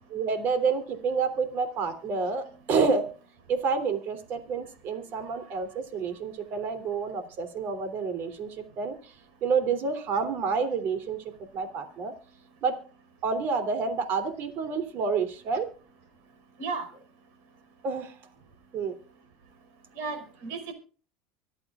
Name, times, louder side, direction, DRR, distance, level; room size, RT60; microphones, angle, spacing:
voice 1, 0.1-3.0 3.5-8.9 9.4-11.2 11.5-12.1 12.6-12.7 13.2-15.7 17.8-18.1 18.7-18.9, right 5 dB, 45° right, 9 dB, 3.2 m, -28 dB
voice 2, 20.0-20.7, right 4 dB, 60° right, 7 dB, 4.9 m, -34 dB
25.0 x 8.6 x 2.5 m, 0.39 s
supercardioid pair, 125°, 5 cm